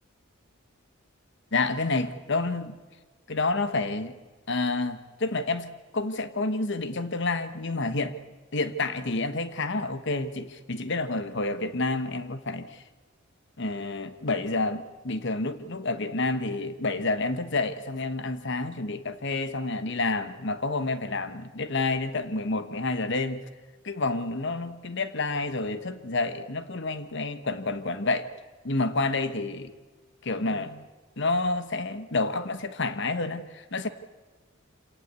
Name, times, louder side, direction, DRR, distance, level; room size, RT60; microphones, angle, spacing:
voice 1, 1.5-2.8 3.3-4.1 4.5-8.2 8.5-12.8 13.6-23.5 23.8-28.3 28.6-29.7 30.2-30.9 31.2-33.9, left 3 dB, 55° left, 1.2 m, -29 dB
25.5 x 18.0 x 8.2 m
head